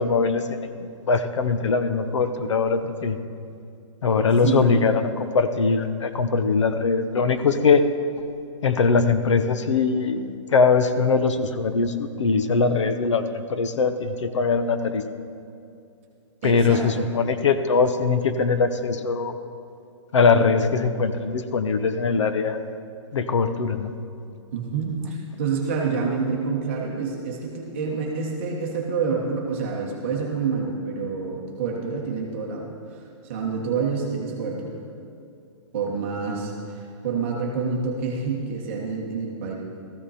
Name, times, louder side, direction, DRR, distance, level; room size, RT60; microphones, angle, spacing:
voice 1, 0.0-3.2 4.0-7.9 8.6-15.0 16.4-19.4 20.1-22.7 23.1-23.9, left 4 dB, 70° left, 10 dB, 1.0 m, -21 dB
voice 2, 4.4-4.7 16.4-17.1 24.5-34.8 35.7-39.5, right 5 dB, 25° right, -2 dB, 1.3 m, -28 dB
15.5 x 14.5 x 4.2 m, 2.6 s
hypercardioid pair, 180°, 16 cm